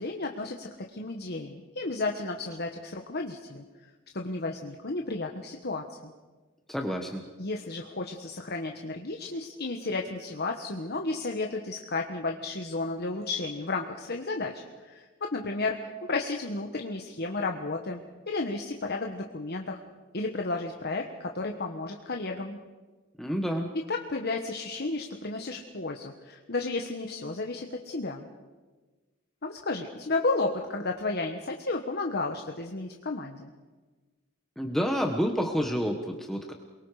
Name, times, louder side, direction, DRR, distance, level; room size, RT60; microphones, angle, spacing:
voice 1, 0.0-3.6 4.1-6.1 7.4-15.8 16.1-19.8 20.1-22.6 23.9-28.3 29.4-33.5, left 3 dB, 50° left, 3 dB, 1.4 m, -33 dB
voice 2, 6.7-7.3 23.2-23.7 34.6-36.5, equal, ahead, 2 dB, 1.3 m, -29 dB
29.0 x 23.0 x 5.0 m, 1.3 s
head